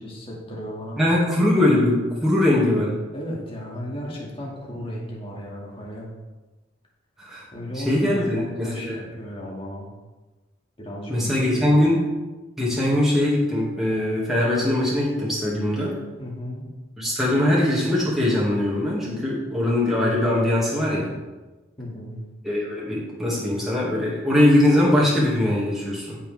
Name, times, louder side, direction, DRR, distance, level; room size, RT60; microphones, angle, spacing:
voice 1, 0.0-1.0 3.1-6.1 7.5-9.9 10.8-11.8 16.2-16.7 21.8-22.2, equal, 30° left, -3 dB, 2.4 m, -34 dB
voice 2, 1.0-3.0 7.2-7.4 7.7-9.0 11.1-12.0 12.6-16.0 17.0-21.1 22.4-26.2, left 1 dB, ahead, -8 dB, 2.3 m, -21 dB
15.0 x 6.0 x 3.6 m, 1.2 s
head